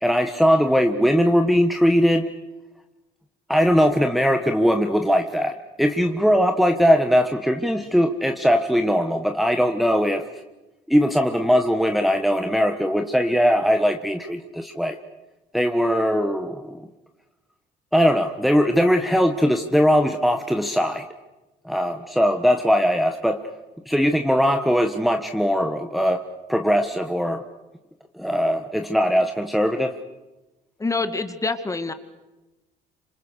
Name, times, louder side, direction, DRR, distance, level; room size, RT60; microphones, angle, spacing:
voice 1, 0.0-2.3 3.5-10.3 10.9-15.0 15.5-16.8 17.9-21.1 21.6-23.4 23.9-26.2 26.5-27.4 28.2-30.0, equal, ahead, 5 dB, 1.4 m, -20 dB
voice 2, 30.8-31.9, left 3 dB, 20° left, 10 dB, 2.1 m, -26 dB
27.0 x 26.5 x 6.6 m, 1.1 s
cardioid pair, 110°, 17 cm